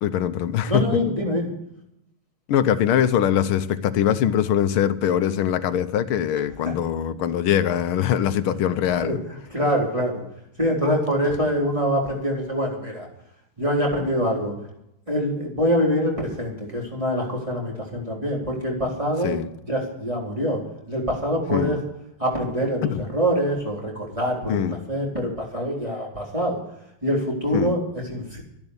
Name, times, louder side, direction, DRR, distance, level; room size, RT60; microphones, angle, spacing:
voice 1, 0.0-0.8 2.5-9.2 19.2-19.5 21.5-21.8 22.9-23.0 24.5-24.8 27.5-27.8, left 10 dB, 90° left, 1.7 m, -22 dB
voice 2, 0.7-1.5 8.9-9.2 9.5-10.2 10.6-13.1 13.6-14.6 15.1-19.3 19.7-20.6 20.9-21.8 22.2-26.6 27.0-28.4, equal, 15° right, 3.9 m, -24 dB
13.0 x 11.0 x 8.2 m
omnidirectional pair, 2.3 m